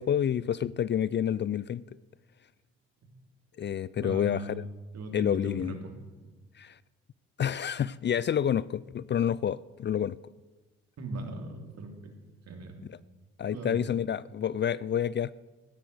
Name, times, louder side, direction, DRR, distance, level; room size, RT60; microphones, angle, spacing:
voice 1, 0.0-1.8 3.6-4.5 5.1-5.7 6.6-6.8 7.4-10.2 12.9-13.0 13.4-15.3, left 9 dB, 40° left, 0.4 m, -29 dB
voice 2, 4.0-4.6 4.9-5.9 11.0-12.1 12.5-12.7 13.5-13.9, right 2 dB, 60° right, 3.2 m, -39 dB
15.0 x 10.0 x 8.1 m
supercardioid pair, 60°, 30 cm